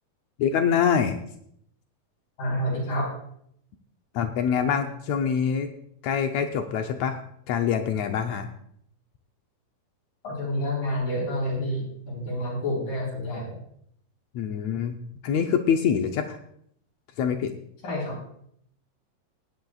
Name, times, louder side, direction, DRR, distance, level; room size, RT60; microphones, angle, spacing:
voice 1, 0.4-1.2 4.1-5.7 6.0-7.2 7.5-8.5 14.3-15.0 15.2-16.4 17.2-17.5, left 7 dB, 90° left, 5 dB, 1.5 m, -25 dB
voice 2, 2.4-3.1 10.2-13.6 17.8-18.2, equal, 65° left, -6 dB, 5.5 m, -28 dB
20.5 x 10.5 x 2.4 m, 0.68 s
omnidirectional pair, 4.1 m